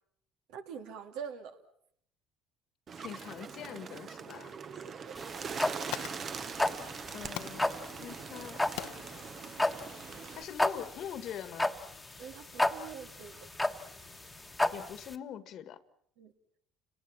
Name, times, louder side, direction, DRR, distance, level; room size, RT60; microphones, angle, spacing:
voice 1, 0.5-1.6 4.8-5.2 12.2-13.4 16.2-16.3, right 7 dB, 80° right, 6 dB, 2.5 m, -44 dB
Bird, 2.9-10.4, right 6 dB, 40° right, 1.1 m, -42 dB
voice 2, 3.0-4.5 7.1-7.7 8.0-8.6 10.3-11.7 14.7-15.8, left 9 dB, 60° left, 14 dB, 1.5 m, -43 dB
sound 1, 5.2-15.1, left 1 dB, 5° left, 1.4 m, -32 dB
Fire, 5.5-14.9, left 15 dB, 75° left, 0.9 m, -49 dB
29.5 x 19.0 x 7.4 m, 0.69 s
supercardioid pair, 95°, 0 cm